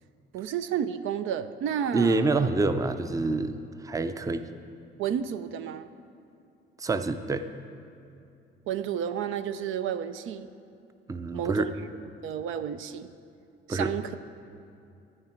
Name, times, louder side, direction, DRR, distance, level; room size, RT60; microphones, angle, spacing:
voice 1, 0.3-2.2 5.0-5.9 8.7-10.5 11.3-11.7 12.2-13.1 13.7-14.2, right 9 dB, 85° right, 11 dB, 0.5 m, -31 dB
voice 2, 1.9-3.6 3.8-4.5 6.8-7.5 11.1-11.7 13.7-13.9, right 3 dB, 15° right, 10 dB, 0.5 m, -26 dB
11.0 x 10.0 x 4.5 m, 2.6 s
cardioid pair, 90°, 20 cm